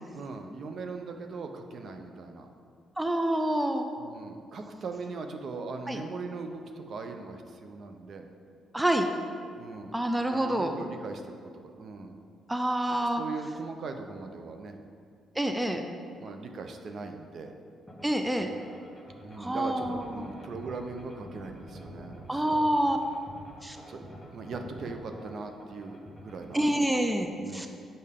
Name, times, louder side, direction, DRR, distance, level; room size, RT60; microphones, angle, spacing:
voice 1, 0.1-2.5 4.0-8.3 9.6-9.9 10.3-12.1 13.0-14.8 16.2-17.5 19.2-22.6 23.9-26.9 27.4-27.7, right 4 dB, 55° right, 5 dB, 0.6 m, -40 dB
voice 2, 3.0-3.9 5.9-6.0 8.7-9.1 9.9-10.7 12.5-13.2 15.4-15.8 18.0-18.5 19.4-20.3 22.3-23.0 23.6-23.8 26.5-27.7, right 1 dB, 10° right, 5 dB, 0.4 m, -27 dB
sound 1, 17.9-26.8, equal, 10° left, 1.2 m, -47 dB
6.6 x 5.3 x 3.6 m, 2.3 s
cardioid pair, 90°, 0 cm